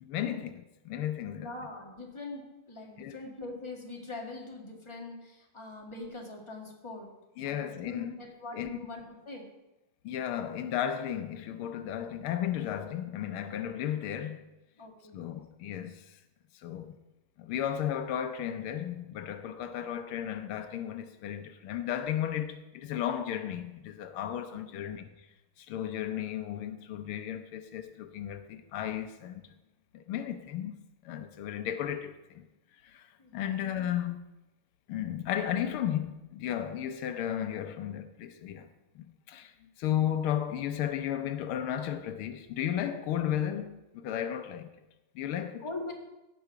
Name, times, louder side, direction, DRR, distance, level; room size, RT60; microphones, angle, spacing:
voice 1, 0.0-1.5 3.0-3.2 7.4-8.1 8.5-8.7 10.0-14.4 15.1-16.2 16.6-17.0 17.4-25.1 25.6-29.4 29.9-30.8 31.1-32.4 32.8-33.1 33.3-34.3 34.9-38.7 39.0-44.7 45.2-45.6, left 10 dB, 90° left, 1.7 m, -34 dB
voice 2, 1.3-7.1 7.4-9.5 14.8-15.3 19.7-19.8 24.5-25.0 33.2-33.7 45.6-45.9, left 2 dB, 15° left, 1.9 m, -43 dB
17.0 x 6.1 x 5.9 m
omnidirectional pair, 2.3 m